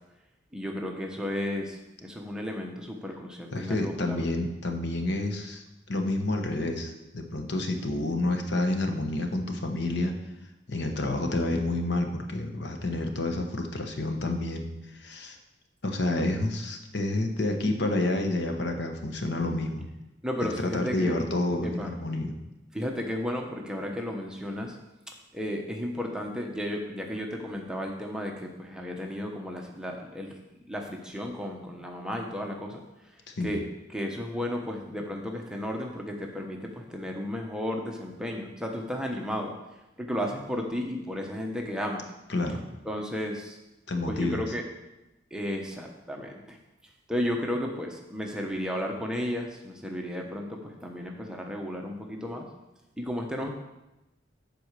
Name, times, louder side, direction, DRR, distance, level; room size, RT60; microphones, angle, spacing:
voice 1, 0.5-4.2 20.2-21.2 21.6-21.9 22.7-24.8 25.1-30.4 30.7-32.8 33.4-39.5 40.0-42.0 42.8-43.6 44.1-44.7 45.3-46.6 47.1-52.5 53.0-53.5, left 1 dB, 5° right, 1 dB, 0.9 m, -33 dB
voice 2, 3.5-10.1 10.7-15.4 15.8-19.9 20.7-22.3 33.4-33.5 42.3-42.6 43.9-44.4, left 2 dB, 65° left, 4 dB, 1.0 m, -29 dB
7.8 x 4.7 x 6.6 m, 0.96 s
head